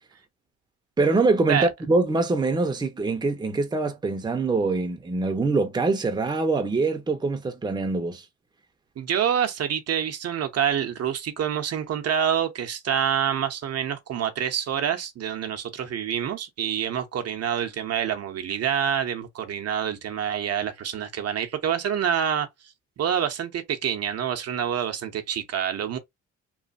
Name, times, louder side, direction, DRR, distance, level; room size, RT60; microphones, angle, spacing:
voice 1, 1.0-8.2, right 3 dB, 15° right, 0.6 m, -24 dB
voice 2, 9.0-22.5 23.0-26.0, right 9 dB, 55° right, 0.7 m, -27 dB
3.1 x 2.1 x 2.5 m
cardioid pair, 90°, 30 cm